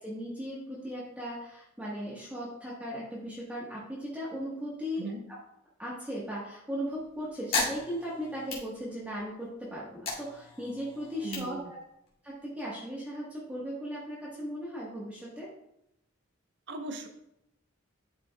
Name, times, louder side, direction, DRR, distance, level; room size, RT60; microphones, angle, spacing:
voice 1, 0.0-5.1 5.8-11.8 12.2-15.5, equal, 5° right, -7 dB, 1.2 m, -37 dB
sound 1, 6.8-9.3 9.7-12.4, left 3 dB, 45° left, 2.1 m, -36 dB
voice 2, 11.2-11.7 16.7-17.1, right 2 dB, 55° right, 6 dB, 0.6 m, -38 dB
11.5 x 5.1 x 2.2 m, 0.83 s
head